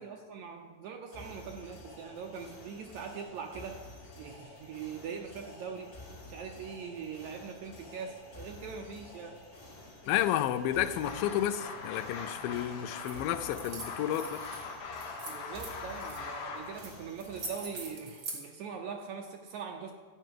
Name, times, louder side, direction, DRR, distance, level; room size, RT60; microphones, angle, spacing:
voice 1, 0.0-3.8 4.2-5.9 6.3-9.4 15.3-19.9, right 6 dB, 75° right, 1.7 m, -42 dB
sound 1, 1.1-17.9, left 1 dB, 30° left, 2.7 m, -50 dB
voice 2, 10.1-14.4, left 11 dB, 85° left, 2.4 m, -31 dB
sound 2, 11.0-16.8, left 4 dB, 60° left, 2.2 m, -42 dB
sound 3, 13.0-13.2 13.5-14.6 15.0-16.2 16.8-16.9 17.2-18.4, right 3 dB, 40° right, 2.4 m, -42 dB
12.5 x 5.6 x 9.2 m
omnidirectional pair, 4.0 m